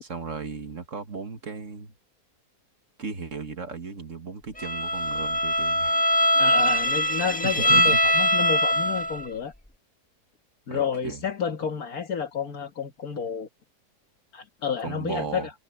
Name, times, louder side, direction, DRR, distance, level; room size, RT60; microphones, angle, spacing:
voice 1, 0.0-1.9 3.0-6.0 7.4-8.0 10.7-11.2 14.8-15.5, right 5 dB, 50° right, 1.9 m, -35 dB
Bowed string instrument, 4.6-9.3, equal, 5° left, 1.1 m, -22 dB
voice 2, 6.4-9.5 10.7-13.5 14.3-15.5, left 6 dB, 65° left, 2.2 m, -30 dB
omnidirectional pair, 1.7 m